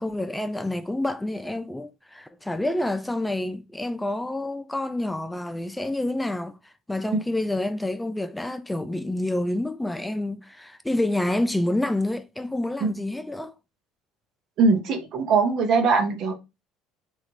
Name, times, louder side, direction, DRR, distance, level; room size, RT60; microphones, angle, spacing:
voice 1, 0.0-13.5, left 1 dB, 10° left, 0.4 m, -28 dB
voice 2, 14.6-16.3, right 4 dB, 60° right, 0.9 m, -21 dB
3.2 x 2.4 x 4.4 m
hypercardioid pair, 70°, 0 cm